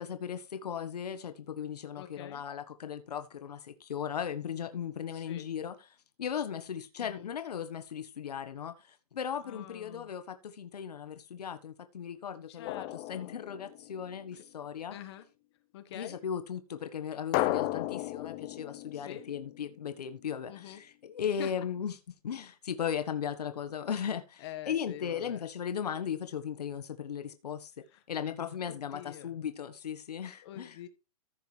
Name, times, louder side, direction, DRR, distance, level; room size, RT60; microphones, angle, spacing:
voice 1, 0.0-5.8 6.2-12.7 13.1-15.0 15.9-21.9 22.2-27.7 28.1-30.8, left 8 dB, 80° left, 1.5 m, -37 dB
voice 2, 1.9-2.4 5.1-5.5 7.0-7.3 9.4-10.1 12.5-13.3 14.3-14.4 14.9-15.3 15.7-16.2 18.9-19.3 20.5-20.8 21.4-21.7 24.4-25.4 27.9-28.0 28.7-29.3 30.4-30.9, left 12 dB, 40° left, 1.6 m, -46 dB
Drum, 12.7-14.2 17.3-20.1, left 16 dB, 25° left, 0.6 m, -35 dB
15.0 x 5.8 x 3.4 m
hypercardioid pair, 155°, 20 cm